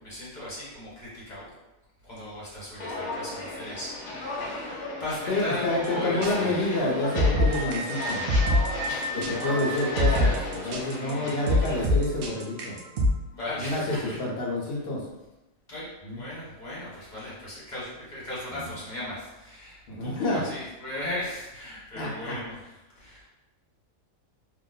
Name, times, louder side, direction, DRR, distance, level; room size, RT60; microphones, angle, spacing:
voice 1, 0.0-1.5 2.0-6.7 8.9-9.1 9.7-10.2 10.6-11.3 13.3-14.2 15.7-15.9 16.1-22.5 23.0-23.2, left 1 dB, 35° left, -8 dB, 1.3 m, -37 dB
Walk footsteps, 2.8-11.8, left 2 dB, 80° left, 1.1 m, -35 dB
voice 2, 5.3-8.3 9.4-12.8 13.6-15.0 16.0-16.2 18.5-18.7 19.9-20.4 22.0-22.4, left 2 dB, 55° left, -3 dB, 0.9 m, -28 dB
sound 1, 5.8-5.9 6.2-6.3 6.8-13.1, left 1 dB, 65° right, 0.5 m, -24 dB
Screaming, 7.1-10.4, right 1 dB, 85° right, 1.1 m, -35 dB
2.9 x 2.0 x 3.8 m, 1.0 s
omnidirectional pair, 1.4 m